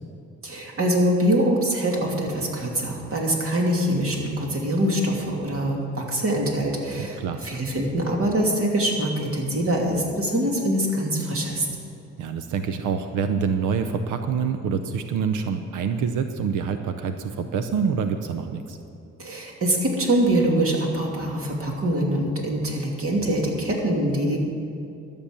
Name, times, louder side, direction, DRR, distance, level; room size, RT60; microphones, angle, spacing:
voice 1, 0.4-11.7 19.2-24.4, right 1 dB, 45° right, -1 dB, 2.8 m, -24 dB
voice 2, 12.2-18.8, right 6 dB, 85° right, 8 dB, 0.8 m, -26 dB
13.0 x 7.2 x 8.5 m, 2.6 s
cardioid pair, 90°, 30 cm